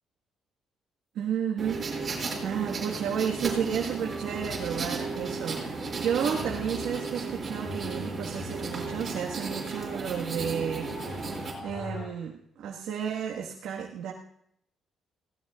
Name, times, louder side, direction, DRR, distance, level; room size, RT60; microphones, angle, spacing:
voice 1, 1.1-1.9 2.4-11.3 11.6-14.1, right 8 dB, 80° right, -1 dB, 1.5 m, -32 dB
sound 1, 1.6-11.5, right 4 dB, 35° right, 6.0 m, -34 dB
sound 2, 3.4-12.1, left 4 dB, 50° left, 4.8 m, -43 dB
19.0 x 17.5 x 2.4 m, 0.70 s
cardioid pair, 90°, 0 cm